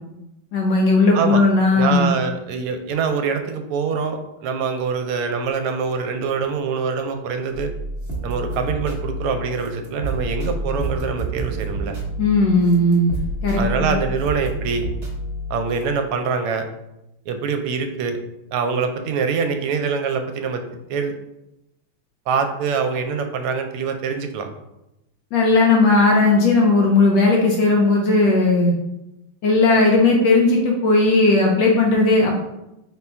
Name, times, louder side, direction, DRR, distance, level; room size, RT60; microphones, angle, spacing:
voice 1, 0.5-2.1 12.2-13.2 13.4-13.9 25.3-28.7 29.4-32.3, left 3 dB, 70° left, 0 dB, 1.1 m, -16 dB
voice 2, 1.7-7.7 8.2-12.0 13.6-14.9 15.5-16.7 17.3-18.2 18.5-20.6 20.9-21.1 22.3-24.5, right 5 dB, 85° right, 6 dB, 1.5 m, -24 dB
sound 1, 7.5-15.8, right 1 dB, 50° right, 0.7 m, -29 dB
3.9 x 2.3 x 4.3 m, 0.89 s
omnidirectional pair, 2.4 m